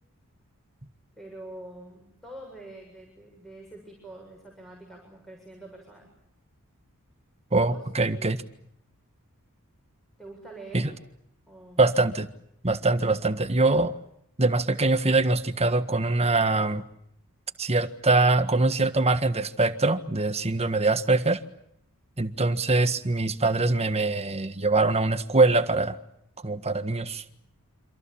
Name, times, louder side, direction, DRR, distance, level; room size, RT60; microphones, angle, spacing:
voice 1, 1.2-6.1 7.5-8.5 10.2-11.0 11.5-11.9, right 2 dB, ahead, 0 dB, 7.4 m, -45 dB
voice 2, 7.5-8.4 10.7-10.9 11.8-12.3 12.6-13.9 14.4-16.9 17.6-21.4 22.2-26.0 26.4-27.2, right 3 dB, 30° right, 10 dB, 1.6 m, -23 dB
28.5 x 26.5 x 7.3 m, 0.74 s
head